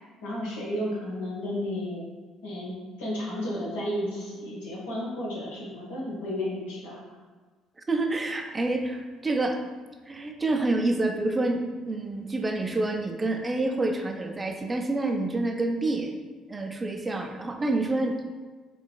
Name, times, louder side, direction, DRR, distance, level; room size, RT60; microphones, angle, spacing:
voice 1, 0.2-2.0 2.4-2.7 3.0-7.0, left 1 dB, 80° left, -6 dB, 1.2 m, -32 dB
voice 2, 7.9-9.6 10.1-16.2 16.5-18.3, right 2 dB, 25° right, 4 dB, 0.5 m, -28 dB
4.7 x 3.2 x 2.3 m, 1.4 s
hypercardioid pair, 55°, 0 cm